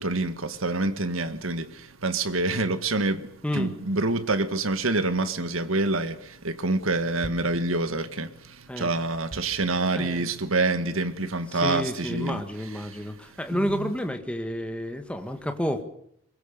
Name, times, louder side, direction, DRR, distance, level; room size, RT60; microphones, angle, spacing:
voice 1, 0.0-3.3 3.5-12.4 12.8-13.0 13.5-13.9, right 2 dB, 85° right, 1.8 m, -27 dB
voice 2, 9.9-10.3 11.5-15.8, equal, 5° left, 1.8 m, -30 dB
23.0 x 21.5 x 6.9 m
head